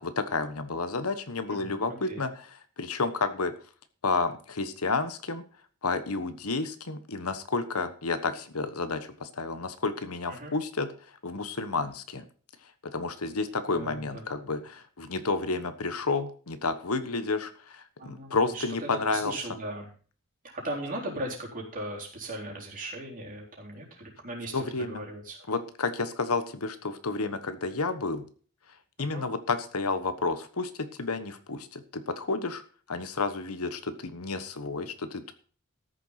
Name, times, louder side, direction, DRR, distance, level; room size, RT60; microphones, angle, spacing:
voice 1, 0.0-2.5 2.8-3.5 4.0-5.4 5.8-10.9 11.2-12.3 12.8-19.3 24.5-25.0 25.5-28.3 29.0-32.6 32.9-35.3, left 3 dB, 80° left, 11 dB, 1.3 m, -31 dB
voice 2, 1.5-2.3 10.3-10.6 13.7-14.2 18.0-19.9 20.5-25.4 29.0-29.3, right 1 dB, 40° right, -2 dB, 4.0 m, -38 dB
13.5 x 6.9 x 5.8 m, 0.41 s
head